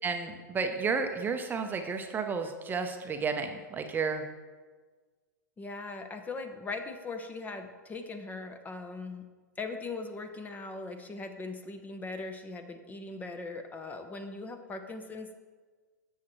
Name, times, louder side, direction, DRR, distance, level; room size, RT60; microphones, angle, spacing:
voice 1, 0.0-4.3, right 5 dB, 20° right, 6 dB, 0.8 m, -32 dB
voice 2, 5.6-9.3 9.6-15.4, left 3 dB, 15° left, 7 dB, 0.8 m, -40 dB
13.0 x 7.4 x 3.2 m, 1.4 s
figure-of-eight pair, 105°, 10 cm